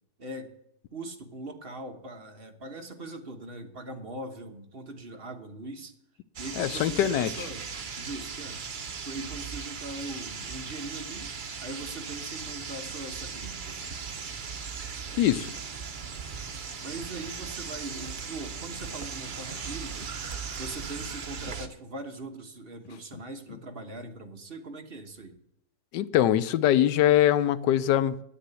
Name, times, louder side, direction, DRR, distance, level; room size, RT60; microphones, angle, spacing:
voice 1, 0.2-0.5 0.9-5.9 6.4-7.7 7.9-8.6 9.0-11.3 11.6-13.8 16.8-20.1 20.6-25.4, right 2 dB, 35° right, 1.3 m, -41 dB
sound 1, 6.4-21.7, right 5 dB, 55° right, 0.5 m, -38 dB
voice 2, 6.6-7.5 15.2-15.5 25.9-28.2, left 12 dB, 75° left, 1.2 m, -23 dB
9.9 x 8.4 x 8.2 m
omnidirectional pair, 2.0 m